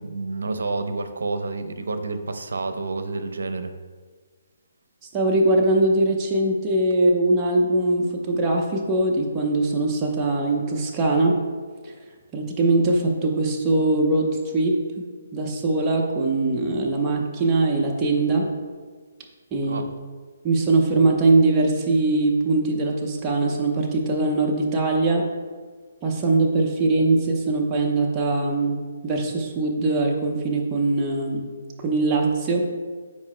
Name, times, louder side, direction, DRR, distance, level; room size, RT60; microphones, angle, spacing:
voice 1, 0.0-3.7 19.6-19.9, right 3 dB, 80° right, 8 dB, 0.7 m, -29 dB
voice 2, 5.1-11.4 11.8-11.9 12.3-15.0 15.3-18.5 19.5-19.8 20.4-25.3 26.0-28.8 29.0-31.5 31.8-32.6, right 2 dB, 20° right, -1 dB, 0.8 m, -21 dB
10.5 x 4.8 x 2.2 m, 1.5 s
hypercardioid pair, 150°, 0 cm